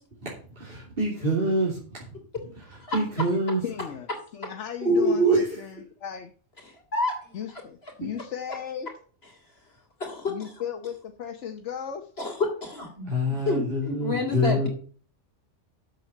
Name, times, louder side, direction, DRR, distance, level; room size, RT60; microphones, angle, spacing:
voice 1, 0.2-2.1 2.9-3.6 4.8-5.6 8.0-8.1 13.1-14.7, right 1 dB, 50° right, -5 dB, 3.4 m, -25 dB
voice 2, 3.6-4.1 4.3-5.4 6.0-6.3 7.3-8.9 10.3-12.0, left 8 dB, 80° left, 6 dB, 1.2 m, -35 dB
voice 3, 6.6-7.2 7.5-7.9 9.2-9.4 10.0-10.6 12.2-13.1 13.4-14.7, left 3 dB, 60° left, 1 dB, 3.4 m, -30 dB
8.1 x 7.3 x 7.4 m, 0.42 s
omnidirectional pair, 1.2 m